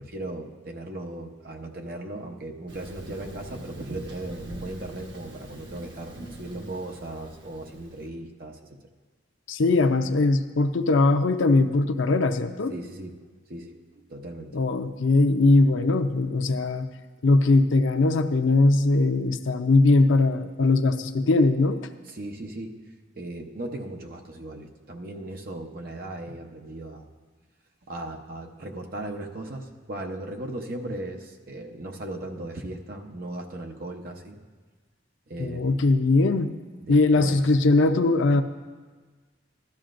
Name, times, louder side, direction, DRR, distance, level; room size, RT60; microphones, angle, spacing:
voice 1, 0.0-8.6 12.7-13.1 13.5-13.8 14.1-14.5 22.1-22.7 23.1-27.1 27.9-34.4 35.3-35.9 36.8-37.4, right 1 dB, 50° right, 2 dB, 0.8 m, -37 dB
Thunder, 2.7-8.1, right 1 dB, 65° right, 1.3 m, -43 dB
voice 2, 9.5-12.7 14.5-16.9 17.2-21.8 35.4-36.5 36.9-38.4, left 2 dB, 80° left, 8 dB, 0.5 m, -20 dB
13.0 x 12.0 x 2.5 m, 1.4 s
head